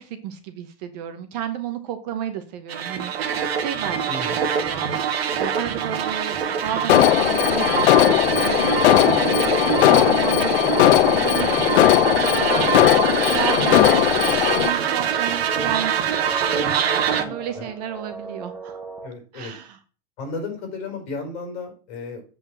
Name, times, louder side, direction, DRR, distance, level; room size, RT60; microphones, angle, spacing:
voice 1, 0.0-8.8 9.2-9.6 9.9-18.8 19.3-19.8, right 9 dB, 35° right, 8 dB, 1.0 m, -33 dB
sound 1, 2.7-17.2, right 7 dB, 60° right, 1.7 m, -24 dB
voice 2, 4.1-4.5 10.8-11.0 11.6-12.1 17.5-17.7 19.0-19.5 20.2-22.2, left 3 dB, 45° left, 4 dB, 5.0 m, -34 dB
Alarm, 6.9-14.7, left 13 dB, 70° left, 0.8 m, -18 dB
sound 2, 9.0-19.1, right 4 dB, 5° right, 0.8 m, -37 dB
8.1 x 5.3 x 7.6 m, 0.38 s
supercardioid pair, 180°, 34 cm